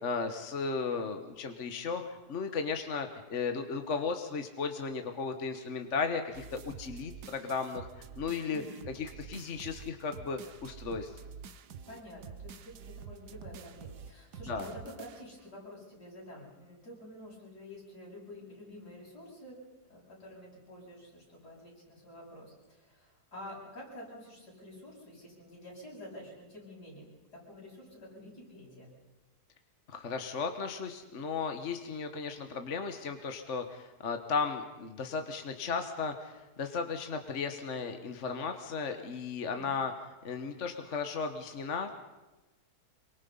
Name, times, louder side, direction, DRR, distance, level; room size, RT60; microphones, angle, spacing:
voice 1, 0.0-8.6 8.9-11.1 14.5-14.7 29.9-39.9 40.2-42.0, left 5 dB, 50° left, 6 dB, 1.6 m, -35 dB
sound 1, 6.3-15.5, right 7 dB, 80° right, 1.5 m, -48 dB
voice 2, 8.5-8.9 11.9-28.9, left 1 dB, 85° left, -4 dB, 8.8 m, -49 dB
26.0 x 24.0 x 5.5 m, 1.1 s
omnidirectional pair, 1.7 m